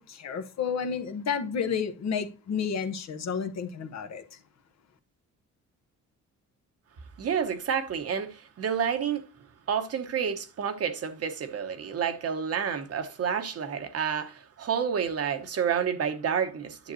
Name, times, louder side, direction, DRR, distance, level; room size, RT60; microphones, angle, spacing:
voice 1, 0.0-4.4, left 6 dB, 60° left, 1.1 m, -31 dB
voice 2, 7.2-9.3 9.7-16.9, right 7 dB, 55° right, 1.1 m, -29 dB
10.0 x 6.5 x 2.7 m
cardioid pair, 90°, 30 cm